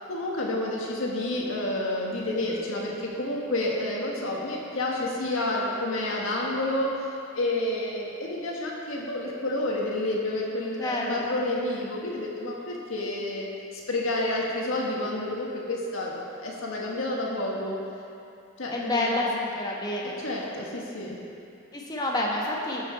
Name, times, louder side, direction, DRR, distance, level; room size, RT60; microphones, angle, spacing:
voice 1, 0.1-16.1 16.4-17.8 18.6-19.2 20.2-21.2, left 1 dB, 70° left, -3 dB, 1.6 m, -29 dB
voice 2, 10.8-11.4 18.7-20.2 21.7-22.8, left 1 dB, 20° left, -2 dB, 1.1 m, -28 dB
13.5 x 5.8 x 4.6 m, 2.7 s
head